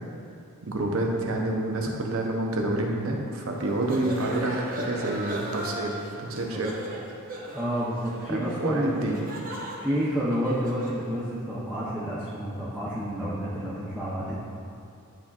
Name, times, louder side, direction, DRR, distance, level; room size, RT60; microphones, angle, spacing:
voice 1, 0.6-6.7 8.3-9.3, right 2 dB, 70° right, 0 dB, 0.8 m, -28 dB
sound 1, 3.6-11.0, right 1 dB, 40° right, 0.8 m, -38 dB
voice 2, 7.5-9.2 9.6-14.3, equal, 5° right, -10 dB, 0.7 m, -29 dB
11.0 x 4.4 x 2.4 m, 2.4 s
head